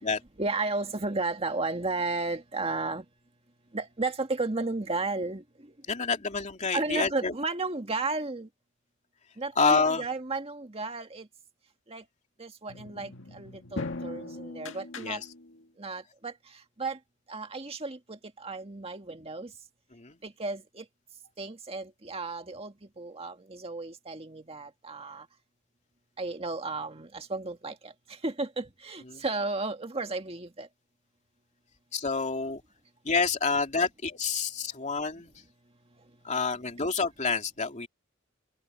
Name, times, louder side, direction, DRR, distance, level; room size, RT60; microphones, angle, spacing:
voice 1, 0.4-3.0 3.7-5.4 6.7-8.5 9.4-11.3 11.9-12.0 12.4-15.2 15.8-16.3 16.8-17.0 17.3-19.5 20.2-20.8 21.4-25.2 26.2-27.9 28.2-30.7, right 3 dB, 30° right, 1.9 m, -33 dB
voice 2, 5.9-7.3 9.6-10.0 15.0-15.3 19.9-20.2 29.1-29.2 31.9-32.6 33.0-35.3 36.2-37.9, left 4 dB, 35° left, 2.8 m, -28 dB
sound 1, 12.7-15.7, left 2 dB, 70° left, 2.1 m, -40 dB
head